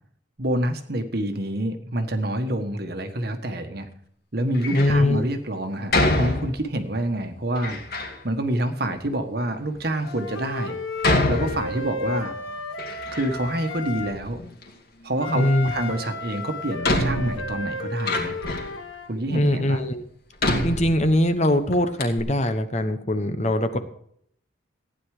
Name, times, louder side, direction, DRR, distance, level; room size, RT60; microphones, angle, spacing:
voice 1, 0.4-3.9 4.3-7.8 8.2-10.8 11.3-12.3 13.1-14.4 15.0-18.4 19.1-19.9 23.7-23.8, right 1 dB, 50° right, 7 dB, 1.4 m, -27 dB
Door, 4.5-5.0 5.9-6.9 7.5-8.2 8.9-9.0 9.7-9.8 11.0-12.2 12.5-13.6 13.8-14.7 16.0-16.1 16.8-18.8 19.4-19.5 20.4-21.5 21.7-21.8 22.0-22.2, left 2 dB, 50° left, 2.5 m, -26 dB
voice 2, 4.7-5.2 15.3-15.7 19.3-20.1 20.6-23.8, left 1 dB, 35° left, 9 dB, 1.1 m, -22 dB
Wind instrument woodwind instrument, 10.0-14.2 15.2-19.1, left 2 dB, 85° left, 1.7 m, -33 dB
15.5 x 10.0 x 4.9 m, 0.66 s
head